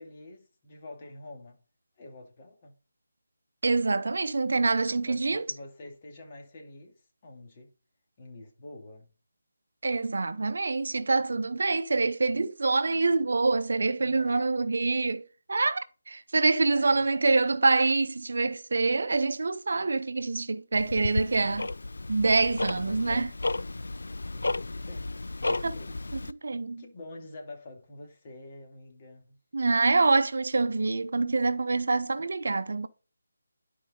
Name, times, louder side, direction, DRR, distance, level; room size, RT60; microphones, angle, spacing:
voice 1, 0.0-1.6 2.0-2.8 5.1-7.7 8.2-9.1 14.0-14.5 16.7-17.1 21.0-21.3 22.9-23.4 24.3-26.1 26.8-29.4, left 2 dB, 35° left, 2.5 m, -47 dB
voice 2, 3.6-5.4 9.8-15.8 16.1-21.7 22.1-23.3 25.5-25.7 26.4-26.8 29.5-32.9, right 3 dB, 65° right, 0.7 m, -26 dB
Tick-tock, 20.7-26.3, left 2 dB, 70° left, 0.5 m, -33 dB
11.5 x 4.7 x 3.8 m
figure-of-eight pair, 155°, 0 cm